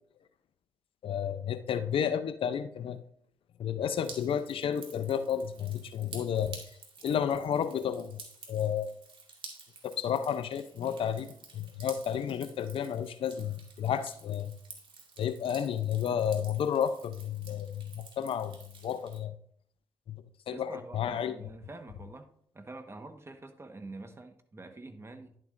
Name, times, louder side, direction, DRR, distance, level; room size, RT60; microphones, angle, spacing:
voice 1, 1.0-3.0 3.6-6.6 7.0-8.2 8.5-8.9 9.8-14.5 15.2-19.4 20.1-20.2 20.5-21.4, left 8 dB, 70° left, 12 dB, 0.6 m, -31 dB
Drip, 3.9-19.2, right 4 dB, 60° right, 2.0 m, -51 dB
voice 2, 20.5-22.3 22.5-25.4, right 2 dB, 30° right, 7 dB, 1.3 m, -46 dB
10.5 x 7.6 x 2.6 m, 0.62 s
supercardioid pair, 45°, 9 cm